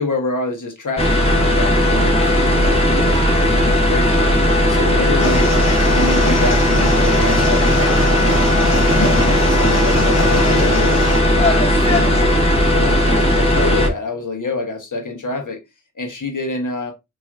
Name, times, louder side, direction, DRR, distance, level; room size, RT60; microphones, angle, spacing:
voice 1, 0.0-4.3 4.7-5.5 5.9-8.4 8.8-11.0 11.3-12.4 12.7-15.6 16.0-16.9, left 3 dB, 85° left, 1.3 m, -26 dB
sound 1, 1.0-13.9, equal, 20° left, 1.5 m, -16 dB
sound 2, 5.2-11.2, left 1 dB, 55° left, 1.1 m, -23 dB
6.0 x 3.1 x 2.5 m
wide cardioid pair, 50°, 30 cm